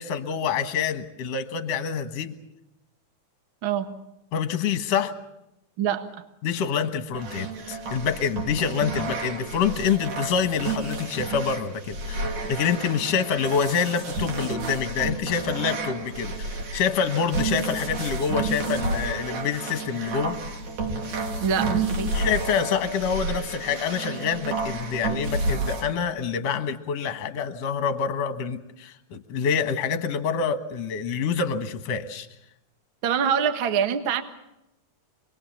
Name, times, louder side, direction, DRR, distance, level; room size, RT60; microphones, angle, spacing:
voice 1, 0.0-2.4 4.3-5.1 6.4-20.4 22.1-32.3, left 6 dB, 60° left, 9 dB, 2.3 m, -26 dB
sound 1, 7.1-25.8, right 3 dB, 65° right, 4.2 m, -31 dB
voice 2, 21.4-22.1 33.0-34.2, right 8 dB, 50° right, 8 dB, 1.8 m, -24 dB
26.5 x 20.5 x 7.2 m, 0.87 s
omnidirectional pair, 3.7 m